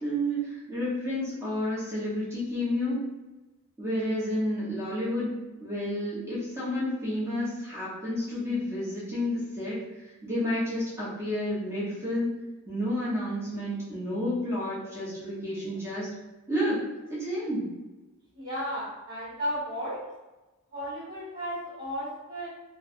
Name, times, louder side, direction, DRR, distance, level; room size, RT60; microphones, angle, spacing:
voice 1, 0.0-3.1 3.8-5.3 5.6-12.3 12.7-16.1 16.5-17.7, left 1 dB, 10° right, -9 dB, 0.9 m, -30 dB
voice 2, 18.3-20.0 20.7-22.5, equal, 45° right, -12 dB, 1.1 m, -34 dB
3.2 x 2.1 x 2.5 m, 1.1 s
head